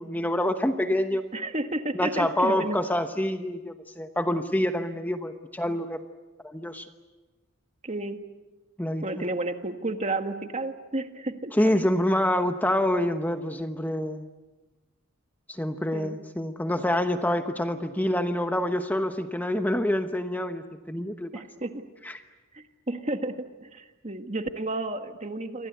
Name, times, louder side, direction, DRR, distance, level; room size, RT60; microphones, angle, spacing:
voice 1, 0.0-1.2 1.9-6.0 6.4-6.9 8.8-9.3 11.5-14.3 15.5-21.3 22.0-22.2, left 1 dB, 10° left, 7 dB, 1.0 m, -27 dB
voice 2, 1.3-2.8 7.8-8.2 9.0-11.9 15.9-16.2 21.3-21.8 22.5-25.7, right 2 dB, 35° right, 7 dB, 1.7 m, -32 dB
29.0 x 24.5 x 8.2 m, 1.2 s
head